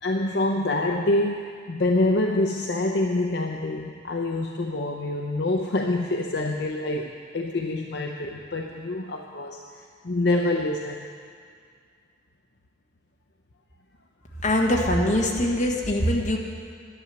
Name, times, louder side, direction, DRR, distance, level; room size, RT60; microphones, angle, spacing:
voice 1, 0.0-11.1, left 2 dB, 60° left, 2 dB, 0.6 m, -26 dB
voice 2, 14.4-16.4, left 1 dB, 40° left, 0 dB, 1.4 m, -22 dB
11.0 x 9.9 x 6.9 m, 2.2 s
head